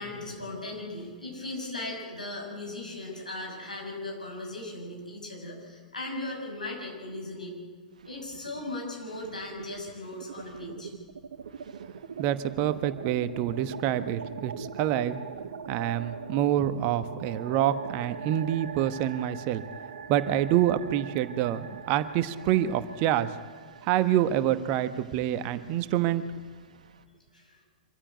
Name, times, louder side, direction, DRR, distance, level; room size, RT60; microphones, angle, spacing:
voice 1, 0.0-7.5 8.0-10.9 27.3-27.6, left 2 dB, 80° left, 0 dB, 6.7 m, -38 dB
sound 1, 7.9-8.7 9.0-27.0, right 6 dB, 65° right, 1.2 m, -42 dB
voice 2, 12.2-15.2 15.7-19.6 20.1-23.3 23.8-26.2, right 11 dB, 40° right, 12 dB, 1.1 m, -27 dB
25.5 x 15.0 x 9.2 m, 1.5 s
figure-of-eight pair, 100°, 4 cm